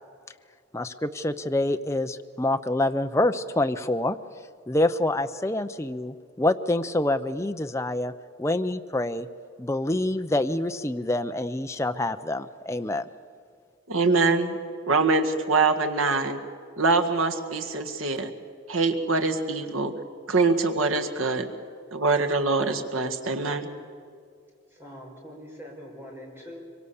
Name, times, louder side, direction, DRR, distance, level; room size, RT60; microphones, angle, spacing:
voice 1, 0.7-4.2 4.7-8.1 8.4-9.3 9.6-13.0, left 1 dB, 15° left, 8 dB, 0.6 m, -26 dB
voice 2, 13.9-14.6 14.9-16.4 16.8-18.3 18.7-19.9 20.3-21.5 21.9-23.7, right 3 dB, 80° right, 5 dB, 1.9 m, -24 dB
voice 3, 24.7-26.6, equal, 10° right, -2 dB, 5.2 m, -43 dB
25.0 x 24.0 x 7.1 m, 2.2 s
head